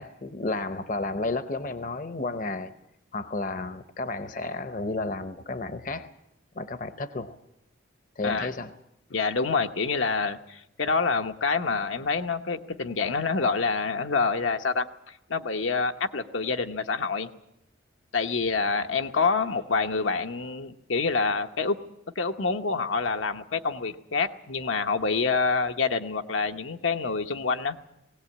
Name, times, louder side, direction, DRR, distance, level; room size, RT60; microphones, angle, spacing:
voice 1, 0.0-2.7 3.1-6.1 6.5-7.4 8.2-8.7, left 2 dB, 40° left, 11 dB, 0.7 m, -32 dB
voice 2, 9.1-14.9 15.3-17.3 18.1-21.8 22.2-27.8, left 4 dB, 80° left, 6 dB, 1.0 m, -27 dB
19.5 x 17.5 x 8.5 m, 0.84 s
head